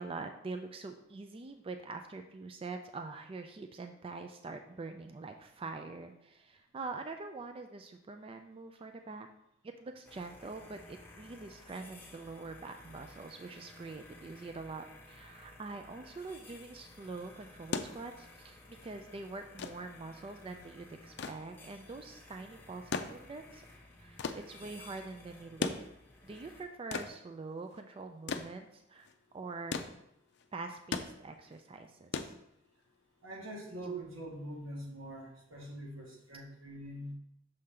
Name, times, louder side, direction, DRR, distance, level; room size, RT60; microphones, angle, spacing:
voice 1, 0.0-9.3 9.6-23.6 24.0-25.7 26.2-29.1 29.3-29.8 30.5-32.3, right 3 dB, 30° right, 6 dB, 0.3 m, -44 dB
sound 1, 10.0-26.6, left 2 dB, 10° left, 1.1 m, -55 dB
sound 2, 17.5-33.0 34.2-34.3, left 4 dB, 60° left, 0.5 m, -41 dB
voice 2, 33.2-37.2, right 1 dB, 90° right, -2 dB, 1.8 m, -43 dB
6.4 x 3.8 x 4.3 m, 0.78 s
head